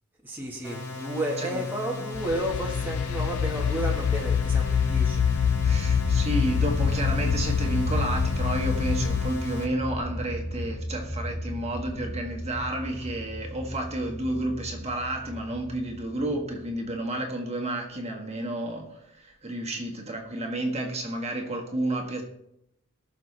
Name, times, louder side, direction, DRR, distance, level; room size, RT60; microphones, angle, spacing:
voice 1, 0.2-5.2, right 1 dB, 10° right, -3 dB, 1.5 m, -32 dB
sound 1, 0.6-9.6, left 3 dB, 15° left, 3.9 m, -37 dB
sound 2, 2.1-9.3, left 7 dB, 70° left, 0.3 m, -26 dB
sound 3, 4.4-16.8, equal, 35° left, 3.6 m, -34 dB
voice 2, 5.6-22.2, right 1 dB, 30° right, 2 dB, 1.8 m, -31 dB
20.0 x 6.7 x 3.4 m, 0.80 s
head